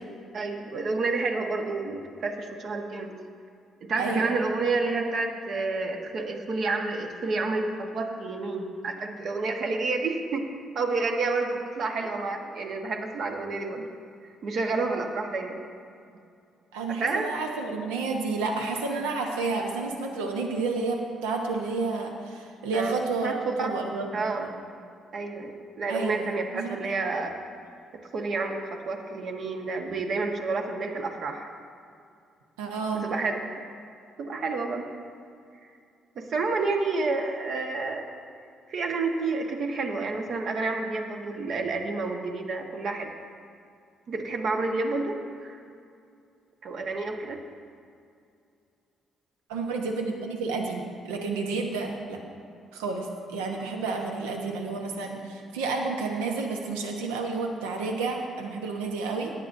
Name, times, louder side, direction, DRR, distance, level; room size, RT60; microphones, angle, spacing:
voice 1, 0.3-3.2 3.8-10.5 10.7-13.8 14.4-15.6 17.0-17.3 22.7-23.8 24.1-24.4 25.1-27.3 28.1-31.5 32.9-33.7 34.2-34.9 36.1-38.1 38.7-43.1 44.1-45.6 46.6-47.4, right 3 dB, 60° right, 3 dB, 1.4 m, -29 dB
voice 2, 4.0-4.3 16.7-23.3 23.6-24.5 25.9-26.8 32.6-33.1 49.5-52.2 52.7-59.3, right 3 dB, 85° right, 2 dB, 1.0 m, -30 dB
18.0 x 10.0 x 2.7 m, 2.4 s
hypercardioid pair, 50°, 0 cm